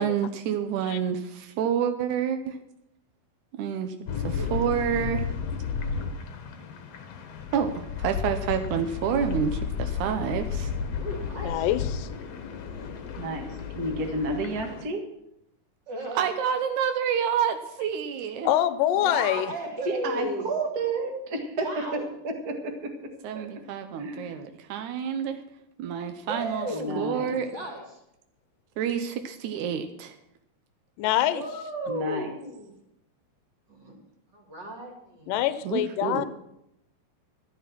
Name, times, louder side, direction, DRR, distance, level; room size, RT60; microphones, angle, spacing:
voice 1, 0.0-2.4 3.6-3.9 4.2-5.3 7.5-7.7 8.0-10.5 16.1-18.5 23.2-25.4 25.8-26.7 27.0-27.5 28.8-30.1 35.6-36.3, right 8 dB, 80° right, 7 dB, 1.8 m, -28 dB
sound 1, 4.1-14.8, left 6 dB, 60° left, 1.9 m, -33 dB
voice 2, 4.2-4.7 9.2-9.4 11.0-11.7 12.6-12.9 15.9-16.3 19.0-20.4 21.6-22.1 26.2-27.8 31.3-32.7 33.7-33.9 34.3-35.4, right 1 dB, 30° right, 0 dB, 3.1 m, -35 dB
voice 3, 11.4-12.1 18.4-19.5 31.0-31.4 35.3-36.3, left 12 dB, 75° left, 13 dB, 2.2 m, -25 dB
voice 4, 13.2-13.5 13.8-15.1 19.8-23.5 24.0-24.4 26.7-27.3 31.9-32.3, right 2 dB, 45° right, 3 dB, 1.2 m, -31 dB
13.5 x 10.5 x 6.0 m, 0.82 s
omnidirectional pair, 4.4 m